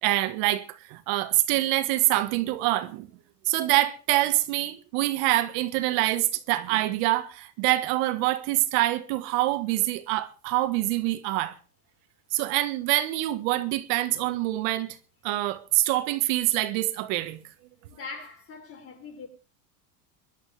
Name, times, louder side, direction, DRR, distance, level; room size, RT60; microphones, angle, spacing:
voice 1, 0.0-3.1 3.4-11.5 12.3-15.0 15.2-17.4, right 16 dB, 65° right, 1.6 m, -25 dB
voice 2, 17.9-19.3, left 4 dB, 30° left, 6.2 m, -41 dB
23.5 x 12.0 x 3.4 m
supercardioid pair, 145°, 43 cm